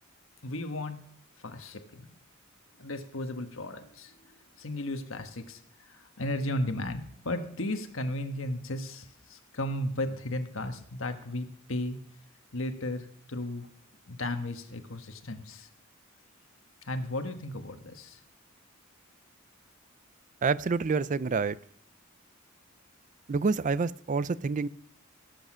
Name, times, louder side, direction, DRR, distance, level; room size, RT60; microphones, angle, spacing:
voice 1, 0.4-1.0 1.4-2.2 2.8-12.0 12.5-13.7 14.1-15.7 16.8-18.2, left 1 dB, 70° left, 1.5 m, -35 dB
voice 2, 20.4-21.6 23.3-24.7, right 4 dB, 40° right, 0.4 m, -27 dB
17.0 x 8.0 x 6.2 m
head